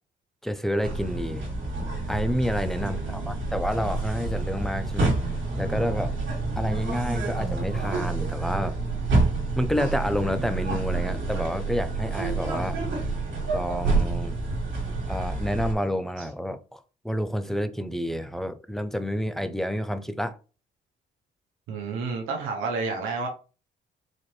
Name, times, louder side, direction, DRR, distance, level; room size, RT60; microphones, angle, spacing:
voice 1, 0.4-1.5 2.1-5.1 5.6-6.1 6.6-8.8 9.6-12.8 13.5-14.4 15.1-20.4, equal, ahead, 0.4 m, -29 dB
sound 1, 0.8-15.7, right 3 dB, 70° right, 1.7 m, -28 dB
voice 2, 2.8-3.4 16.2-16.3 21.7-23.3, right 4 dB, 90° right, 0.8 m, -31 dB
4.1 x 2.6 x 3.2 m
cardioid pair, 90°, 20 cm